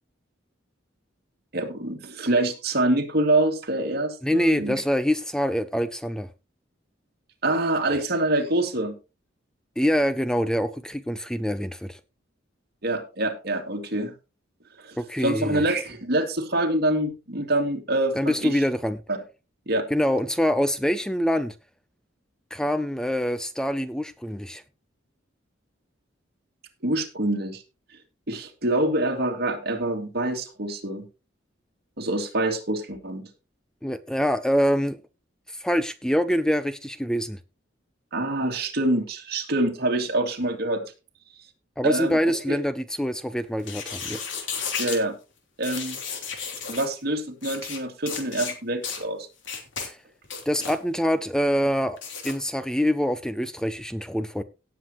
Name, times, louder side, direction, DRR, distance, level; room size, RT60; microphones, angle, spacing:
voice 1, 1.5-4.8 7.4-9.0 12.8-14.1 14.8-18.6 19.1-19.2 19.7-19.9 26.8-27.6 28.3-31.1 32.0-33.3 38.1-40.8 41.8-42.2 42.5-42.6 44.8-45.2 45.6-46.0 46.7-49.3, right 1 dB, 55° right, 2.4 m, -26 dB
voice 2, 4.2-6.3 7.9-8.0 9.8-12.0 15.0-15.6 18.1-19.0 19.9-21.5 22.5-24.6 33.8-35.0 35.5-37.4 41.8-44.2 49.8-50.0 50.5-52.0 52.2-54.4, equal, 5° left, 0.5 m, -25 dB
sound 1, 43.6-45.0 45.6-46.9 47.4-47.8 48.1-48.5 48.8-49.0 49.4-49.9 50.2-50.8 52.0-52.3, left 6 dB, 75° left, 3.0 m, -33 dB
17.5 x 7.7 x 3.0 m
head